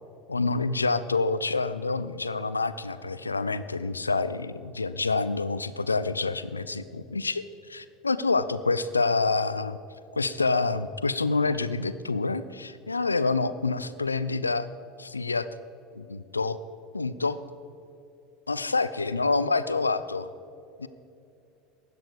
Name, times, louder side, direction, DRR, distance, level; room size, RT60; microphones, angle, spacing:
voice 1, 0.3-7.4 7.7-9.8 10.2-14.7 15.0-15.5 16.0-16.6 16.9-17.4 18.5-20.3 20.8-20.9, left 3 dB, 80° left, 14 dB, 0.5 m, -27 dB
16.0 x 11.0 x 5.0 m, 2.8 s
figure-of-eight pair, 75°, 0 cm